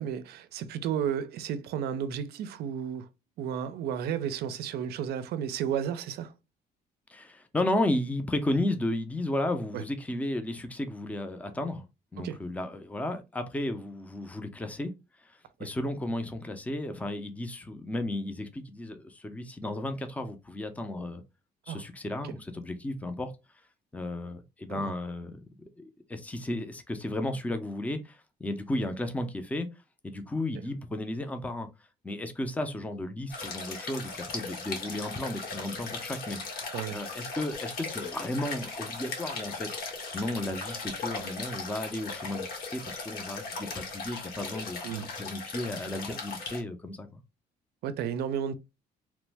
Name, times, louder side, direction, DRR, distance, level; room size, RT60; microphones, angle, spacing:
voice 1, 0.0-3.1 3.4-6.3 9.7-9.8 12.2-12.4 15.6-15.7 21.7-21.8 24.7-24.9 36.7-37.0 44.8-45.1 47.8-48.5, right 8 dB, 70° right, 0.5 m, -33 dB
voice 2, 7.1-11.9 12.1-14.9 15.2-21.2 21.7-23.3 23.9-29.7 30.0-31.7 32.0-39.7 40.1-47.2, left 1 dB, 10° left, 0.5 m, -34 dB
sound 1, 33.3-46.6, left 4 dB, 65° left, 1.1 m, -38 dB
3.0 x 2.1 x 3.3 m
cardioid pair, 110°, 17 cm